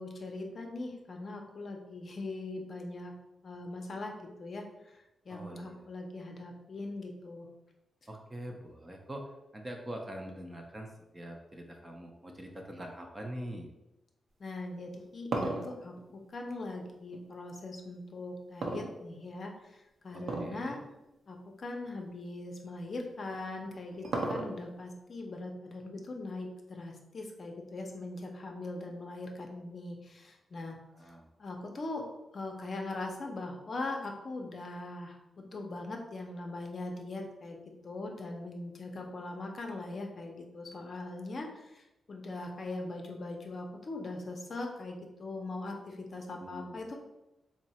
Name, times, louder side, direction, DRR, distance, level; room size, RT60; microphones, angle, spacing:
voice 1, 0.0-3.1 3.4-5.0 5.3-7.5 14.4-20.8 21.3-30.8 31.4-32.0 32.3-37.6 37.8-46.9, left 2 dB, 45° left, 2 dB, 0.6 m, -41 dB
voice 2, 5.3-5.9 8.1-13.7 20.1-20.8 30.6-31.3 46.4-46.8, right 1 dB, 20° right, 2 dB, 0.5 m, -44 dB
sound 1, 14.8-17.2 18.6-19.5 20.2-20.6 21.0-21.1 21.8-22.0 23.3-24.8, right 2 dB, 60° right, 0.6 m, -35 dB
3.6 x 2.1 x 4.1 m, 0.95 s
wide cardioid pair, 115°, 0 cm